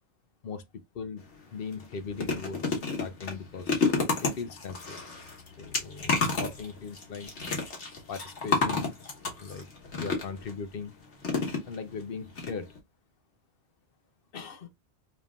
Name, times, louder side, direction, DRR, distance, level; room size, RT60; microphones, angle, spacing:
voice 1, 0.9-1.2 1.5-3.9 4.2-5.0 5.6-6.1 6.4-7.3 8.1-9.0 9.4-9.7 10.0-10.9 11.7-12.7 14.3-14.7, left 5 dB, 60° left, 0.8 m, -39 dB
sound 1, 1.2-1.3 1.7-10.5 11.2-12.0 12.4-12.5 12.8-12.9, left 4 dB, 80° left, 1.5 m, -30 dB
5.2 x 2.9 x 2.4 m
omnidirectional pair, 1.2 m